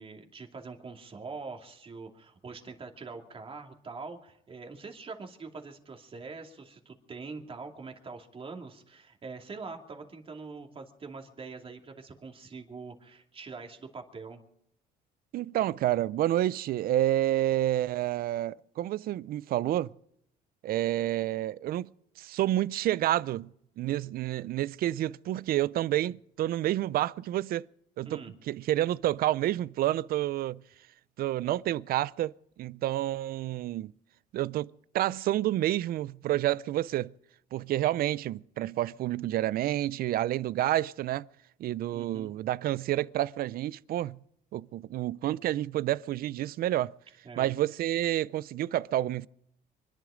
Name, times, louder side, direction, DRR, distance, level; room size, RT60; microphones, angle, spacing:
voice 1, 0.0-14.4 28.0-28.3 41.9-42.3 47.2-47.5, right 4 dB, 35° right, 2.6 m, -44 dB
voice 2, 15.3-19.9 20.6-21.9 22.2-23.5 23.8-27.7 28.0-28.2 28.5-30.6 31.2-32.3 32.6-33.9 34.3-34.7 34.9-37.1 37.5-41.3 41.6-44.2 44.5-46.9 47.4-49.3, right 14 dB, 60° right, 0.5 m, -29 dB
25.0 x 11.0 x 5.0 m
cardioid pair, 110°, 17 cm